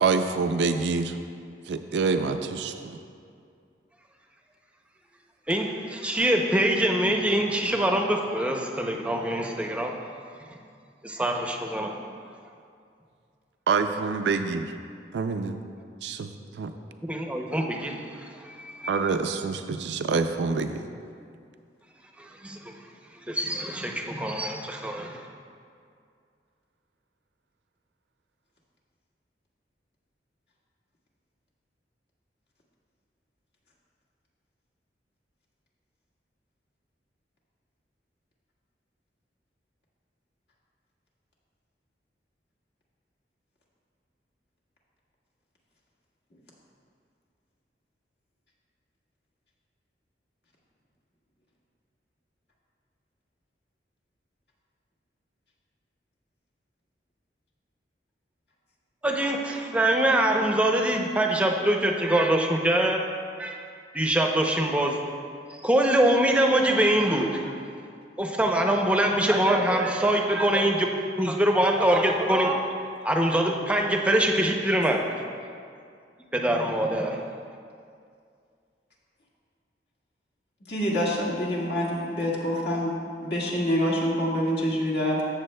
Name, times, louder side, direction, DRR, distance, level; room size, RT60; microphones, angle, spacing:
voice 1, 0.0-1.2 1.7-3.0 13.7-14.7 15.1-15.6 16.0-16.7 18.9-20.8, right 4 dB, 80° right, 8 dB, 0.4 m, -26 dB
voice 2, 5.5-9.9 11.0-12.0 17.1-18.9 22.2-22.7 23.3-25.2 59.0-63.0 63.4-63.6 63.9-65.0 65.6-67.5 68.2-70.9 71.2-72.6 73.0-75.0 76.3-77.2, right 1 dB, 5° right, 2 dB, 0.5 m, -24 dB
voice 3, 80.7-82.9 83.2-85.2, equal, 70° left, -5 dB, 1.7 m, -26 dB
14.0 x 7.0 x 2.2 m, 2.3 s
head